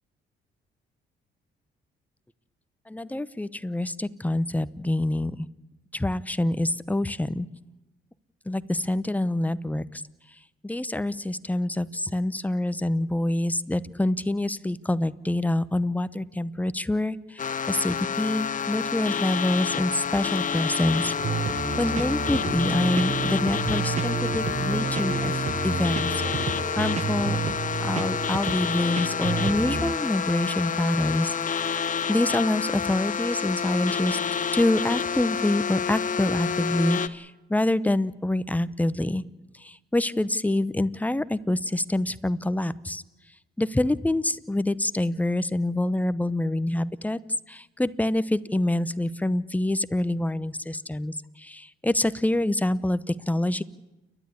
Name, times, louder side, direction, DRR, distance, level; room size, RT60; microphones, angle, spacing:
voice 1, 2.9-5.4 5.9-7.5 8.5-10.0 10.6-21.2 21.5-27.4 27.8-31.7 32.1-34.2 34.5-39.2 39.6-43.0 43.6-47.2 47.5-53.6, left 1 dB, 10° left, 15 dB, 0.8 m, -26 dB
sound 1, 17.4-37.1, left 7 dB, 40° left, 1.0 m, -29 dB
sound 2, 21.0-29.9, right 6 dB, 35° right, 1.0 m, -30 dB
29.5 x 12.0 x 9.9 m, 1.1 s
cardioid pair, 90°, 20 cm